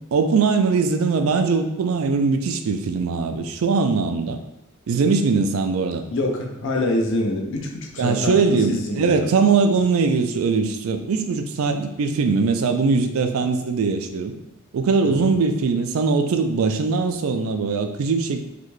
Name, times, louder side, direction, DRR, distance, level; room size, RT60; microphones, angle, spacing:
voice 1, 0.1-4.4 4.9-6.0 8.0-14.3 14.7-18.4, right 4 dB, 75° right, 7 dB, 0.4 m, -21 dB
voice 2, 6.1-9.3 15.0-15.3, left 1 dB, 65° left, 2 dB, 0.6 m, -25 dB
4.0 x 2.2 x 3.1 m, 0.90 s
head